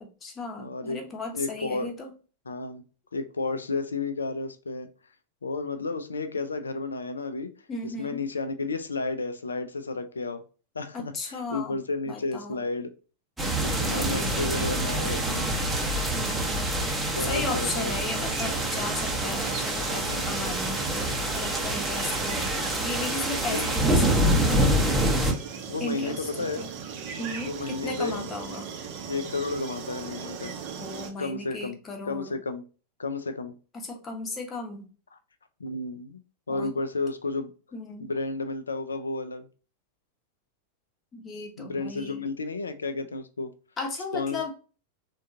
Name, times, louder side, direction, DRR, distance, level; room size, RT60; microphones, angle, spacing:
voice 1, 0.0-2.1 7.7-8.2 10.9-11.8 12.1-12.6 13.9-15.1 16.1-16.7 17.0-24.6 25.8-26.7 27.2-28.7 30.8-32.3 33.8-34.9 36.5-36.8 37.7-38.1 41.1-42.2 43.8-44.5, left 3 dB, 25° left, 0.8 m, -36 dB
voice 2, 0.6-1.0 1.3-1.9 2.5-2.8 3.1-4.9 5.4-7.5 7.8-10.4 10.7-12.9 13.6-15.5 17.2-18.1 20.0-20.4 23.4-23.7 25.3-26.6 27.5-28.3 29.1-30.5 31.2-31.8 32.0-32.6 33.0-33.5 35.6-36.2 36.5-37.5 38.0-39.5 41.6-43.5 44.1-44.4, left 3 dB, 75° left, 0.3 m, -32 dB
sound 1, 13.4-25.3, right 1 dB, 5° right, 0.7 m, -26 dB
sound 2, 18.2-31.1, right 6 dB, 45° right, 0.6 m, -38 dB
3.5 x 2.3 x 2.6 m
figure-of-eight pair, 90°, 0 cm